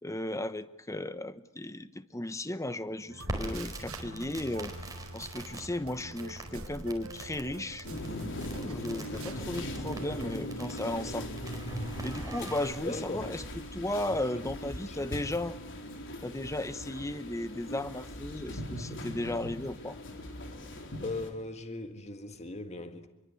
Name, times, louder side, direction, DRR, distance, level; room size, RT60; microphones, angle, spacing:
voice 1, 0.0-4.7 5.1-7.9 8.5-11.3 12.0-15.6 16.2-20.0, left 1 dB, 15° left, 1.0 m, -35 dB
sound 1, 3.1-10.3, right 3 dB, 65° right, 1.4 m, -47 dB
Crackle, 3.2-12.7, right 1 dB, 15° right, 4.8 m, -43 dB
sound 2, 7.8-21.3, left 1 dB, 60° left, 4.1 m, -40 dB
voice 2, 12.8-13.3 14.1-15.2 21.0-23.1, left 2 dB, 30° left, 1.8 m, -39 dB
27.0 x 23.5 x 8.4 m
head